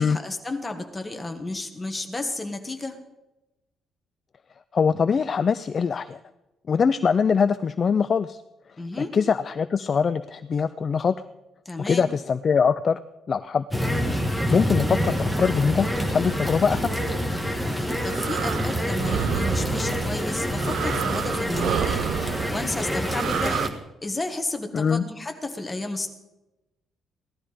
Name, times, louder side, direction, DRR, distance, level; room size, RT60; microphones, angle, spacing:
voice 1, 0.0-3.0 8.8-9.1 11.6-12.1 14.6-14.9 17.7-22.1 22.5-23.7 24.0-26.1, left 2 dB, 15° left, 5 dB, 1.5 m, -32 dB
voice 2, 4.7-6.2 6.7-8.4 9.1-11.2 11.9-13.0 13.3-13.6 14.5-17.1 24.7-25.0, left 6 dB, 30° left, 13 dB, 0.4 m, -23 dB
sound 1, 13.7-23.7, equal, 5° right, 1.5 m, -27 dB
sound 2, 17.6-23.7, right 10 dB, 70° right, 0.6 m, -30 dB
16.5 x 12.0 x 5.1 m, 0.99 s
cardioid pair, 165°, 0 cm